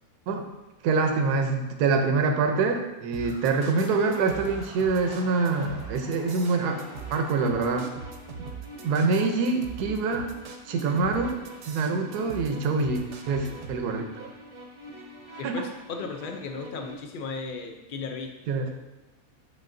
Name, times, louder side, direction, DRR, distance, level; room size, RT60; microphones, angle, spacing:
voice 1, 0.8-6.8 7.1-7.9 8.8-10.3 10.7-11.4 11.7-14.3 15.4-15.5 18.5-18.7, right 4 dB, 80° right, 4 dB, 1.2 m, -25 dB
sound 1, 3.1-13.8, right 6 dB, 60° right, 0.9 m, -41 dB
sound 2, 3.2-8.9, left 1 dB, 65° left, 1.6 m, -47 dB
sound 3, 6.5-16.9, equal, 30° right, 0.6 m, -46 dB
voice 2, 15.4-18.4, left 4 dB, 85° left, 4 dB, 0.4 m, -36 dB
8.3 x 5.9 x 2.6 m, 1.1 s
omnidirectional pair, 1.7 m